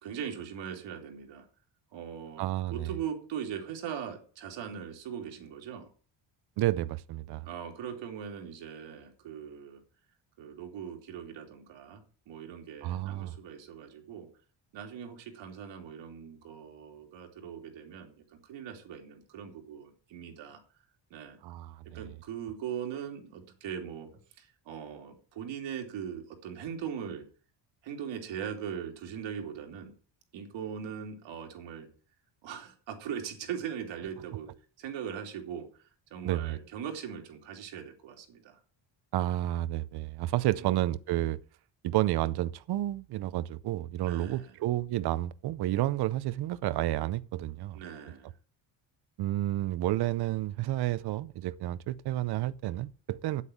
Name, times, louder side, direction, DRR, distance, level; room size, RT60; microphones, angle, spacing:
voice 1, 0.0-1.5 1.9-5.9 7.4-9.8 10.4-14.3 14.7-20.6 21.1-21.4 21.9-24.1 24.4-27.2 27.8-29.9 30.3-31.9 32.4-34.5 34.8-35.8 36.1-38.6 40.6-40.9 44.0-44.5 47.7-48.3, right 8 dB, 90° right, 3.2 m, -40 dB
voice 2, 2.4-2.9 6.6-7.5 12.8-13.3 21.4-22.0 36.2-36.6 39.1-41.4 41.8-47.8 49.2-53.4, right 14 dB, 60° right, 0.7 m, -30 dB
9.0 x 8.3 x 8.5 m
cardioid pair, 155°, 44 cm